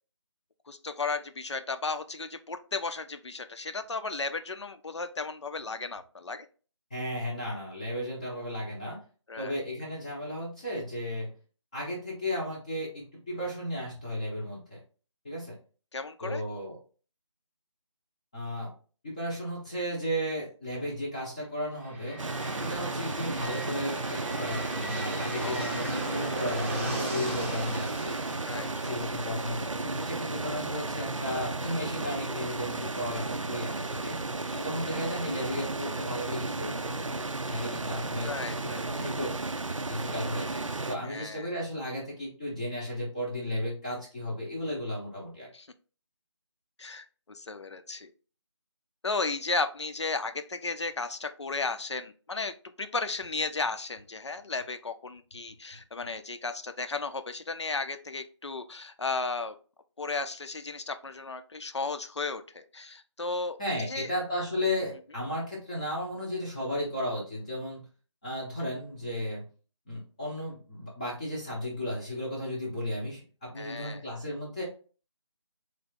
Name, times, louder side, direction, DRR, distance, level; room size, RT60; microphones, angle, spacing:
voice 1, 0.7-6.5 9.3-9.6 15.9-16.4 25.4-25.7 28.5-28.9 34.4-34.6 38.2-38.9 41.1-41.5 45.5-45.7 46.8-48.1 49.0-59.5 60.0-63.6 63.9-64.1 73.6-74.0, left 3 dB, 65° left, 9 dB, 0.6 m, -34 dB
voice 2, 6.9-9.0 9.4-11.3 11.7-14.8 15.2-15.6 16.2-16.8 18.3-18.7 19.0-22.2 22.6-28.2 28.8-34.2 34.6-37.2 37.5-39.3 39.8-40.6 40.9-45.5 63.6-67.8 68.2-69.4 69.9-74.6, left 1 dB, 15° left, -5 dB, 0.6 m, -34 dB
sound 1, 21.7-31.5, right 1 dB, 25° right, 0.7 m, -38 dB
sound 2, 22.2-41.0, right 3 dB, 90° right, 0.5 m, -34 dB
3.6 x 2.7 x 3.6 m, 0.37 s
figure-of-eight pair, 160°, 16 cm